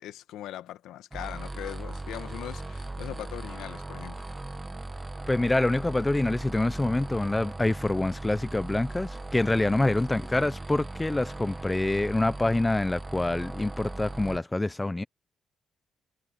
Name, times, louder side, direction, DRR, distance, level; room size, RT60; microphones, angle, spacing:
voice 1, 0.0-4.2 9.7-10.0, left 13 dB, 85° left, 1.5 m, -40 dB
sound 1, 1.1-14.4, right 2 dB, 15° right, 1.3 m, -38 dB
voice 2, 5.3-15.0, left 2 dB, 15° left, 0.7 m, -26 dB
cardioid pair, 90°, 0 cm